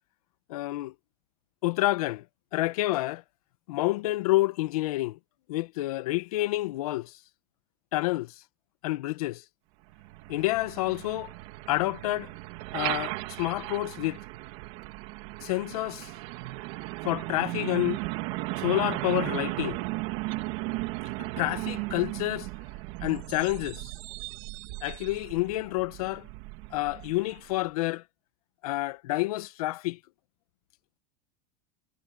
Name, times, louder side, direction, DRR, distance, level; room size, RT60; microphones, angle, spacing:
voice 1, 0.5-0.9 1.6-2.2 2.5-3.2 3.7-5.2 5.5-7.1 7.9-8.3 8.8-9.4 10.3-11.3 11.7-12.3 12.7-14.2 15.4-16.1 17.0-18.0 18.6-19.8 21.2-22.5 23.0-23.9 24.8-26.3 26.7-28.0 28.6-30.0, left 18 dB, 80° left, 1.2 m, -29 dB
Truck, 9.9-27.6, right 21 dB, 55° right, 2.2 m, -36 dB
supercardioid pair, 160°, 19 cm